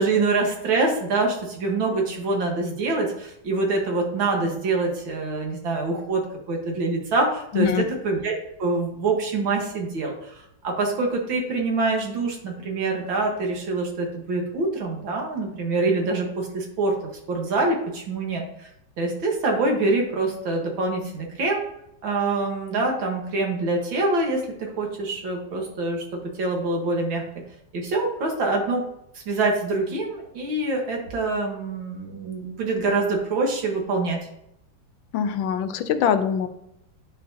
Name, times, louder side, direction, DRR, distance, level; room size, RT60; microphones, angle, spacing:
voice 1, 0.0-6.2 6.5-10.3 10.6-17.0 17.3-18.7 19.0-21.6 22.0-27.2 27.7-28.9 29.3-34.2, right 3 dB, 80° right, 0 dB, 2.3 m, -25 dB
voice 2, 7.5-7.8 35.1-36.5, left 8 dB, 80° left, 10 dB, 1.4 m, -23 dB
10.5 x 4.7 x 2.8 m, 0.79 s
omnidirectional pair, 2.1 m